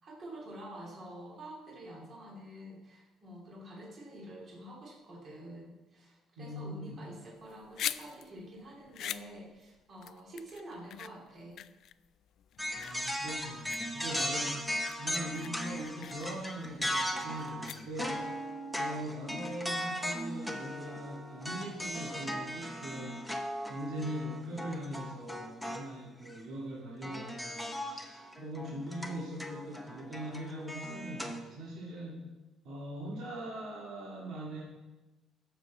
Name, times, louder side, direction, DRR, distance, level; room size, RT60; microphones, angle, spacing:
voice 1, 0.0-11.6, right 1 dB, 35° right, -3 dB, 2.8 m, -48 dB
voice 2, 6.4-7.0 12.8-14.6 15.0-18.2 18.8-23.3 23.7-32.3 32.6-34.6, equal, 65° right, -6 dB, 2.3 m, -41 dB
sound 1, 7.4-18.3, left 11 dB, 55° left, 0.3 m, -44 dB
sound 2, 12.6-25.9 26.3-26.4 27.0-31.4, equal, ahead, 0.9 m, -38 dB
14.5 x 6.8 x 4.2 m, 1.1 s
cardioid pair, 160°, 0 cm